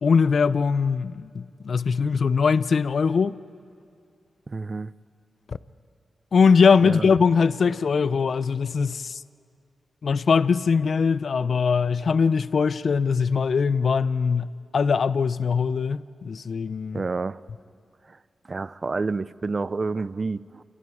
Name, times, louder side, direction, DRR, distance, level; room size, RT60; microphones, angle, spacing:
voice 1, 0.0-3.4 5.5-5.6 6.3-9.2 10.0-17.0, left 5 dB, 70° left, 0.5 m, -21 dB
voice 2, 4.5-4.9 6.8-7.1 16.9-17.4 18.1-18.2 18.5-20.6, right 3 dB, 45° right, 0.5 m, -29 dB
27.5 x 27.0 x 4.8 m
cardioid pair, 65°, 0 cm